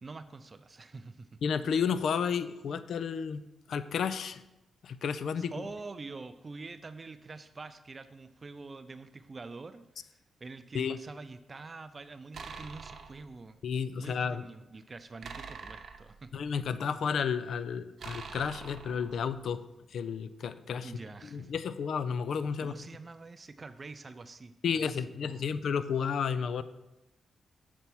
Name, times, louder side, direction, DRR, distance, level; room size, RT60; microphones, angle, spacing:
voice 1, 0.0-1.4 5.4-13.6 14.0-16.4 20.8-21.5 22.6-25.5, right 3 dB, 35° right, 11 dB, 0.3 m, -46 dB
voice 2, 1.4-3.4 3.7-4.4 4.8-5.5 10.7-11.0 13.6-14.4 16.3-19.6 19.9-20.9 21.3-22.8 24.6-26.6, left 6 dB, 75° left, 13 dB, 0.4 m, -32 dB
sound 1, 12.3-13.2 15.2-16.7 18.0-19.4, right 5 dB, 60° right, 0.8 m, -45 dB
6.9 x 4.3 x 6.0 m, 0.98 s
cardioid pair, 105°, 0 cm